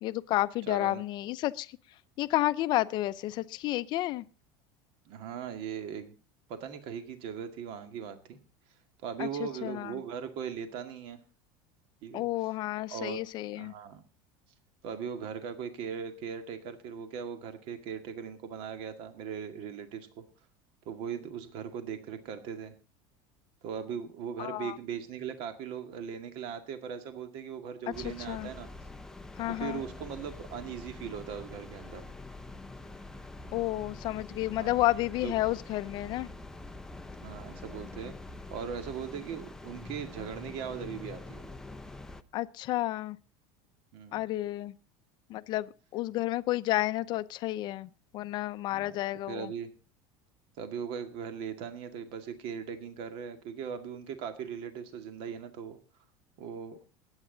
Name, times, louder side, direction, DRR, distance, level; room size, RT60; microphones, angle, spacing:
voice 1, 0.0-1.7 2.2-4.2 9.2-10.0 12.1-13.7 24.4-24.7 28.0-28.5 29.4-29.8 33.5-36.3 42.3-43.2 44.1-44.7 45.3-49.5, left 16 dB, 40° left, 0.7 m, -31 dB
voice 2, 0.7-1.0 5.1-6.2 6.5-8.4 9.0-11.2 12.0-12.5 12.9-13.2 13.5-14.0 14.8-20.2 20.9-22.7 23.6-28.7 29.5-32.0 34.6-34.8 35.2-35.3 37.2-38.1 38.5-41.5 43.9-44.2 48.7-48.9 49.3-49.7 50.6-55.8 56.4-56.8, right 7 dB, 50° right, 2.0 m, -39 dB
sound 1, 27.9-42.2, left 2 dB, 5° left, 0.6 m, -45 dB
21.0 x 9.1 x 4.0 m
supercardioid pair, 155°, 12 cm